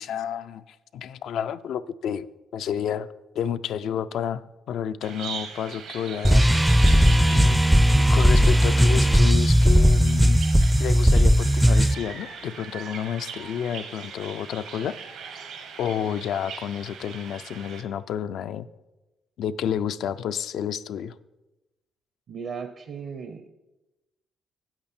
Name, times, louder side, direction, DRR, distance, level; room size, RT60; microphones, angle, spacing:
voice 1, 0.0-2.3 2.5-3.1 3.4-6.8 7.3-7.6 8.1-10.4 10.8-15.0 15.8-18.7 19.4-21.1, left 8 dB, 75° left, 13 dB, 0.4 m, -30 dB
Bird vocalization bird call bird song, 5.0-17.8, right 6 dB, 85° right, 1.2 m, -40 dB
sound 1, 6.2-11.9, equal, 5° right, 0.4 m, -17 dB
voice 2, 22.3-23.5, right 6 dB, 65° right, 8 dB, 0.7 m, -36 dB
8.8 x 8.1 x 4.3 m, 1.0 s
cardioid pair, 90°, 0 cm